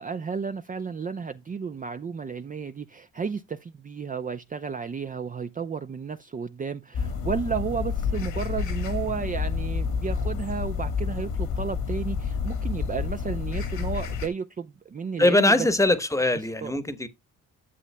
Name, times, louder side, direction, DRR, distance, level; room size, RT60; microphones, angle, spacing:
voice 1, 0.0-15.7 16.2-16.3 16.6-16.7, right 6 dB, 25° right, 0.5 m, -32 dB
sound 1, 6.9-14.3, left 6 dB, 85° left, 1.9 m, -29 dB
voice 2, 15.2-17.1, left 2 dB, 10° left, 1.1 m, -21 dB
11.0 x 7.4 x 2.2 m
cardioid pair, 90°, 30 cm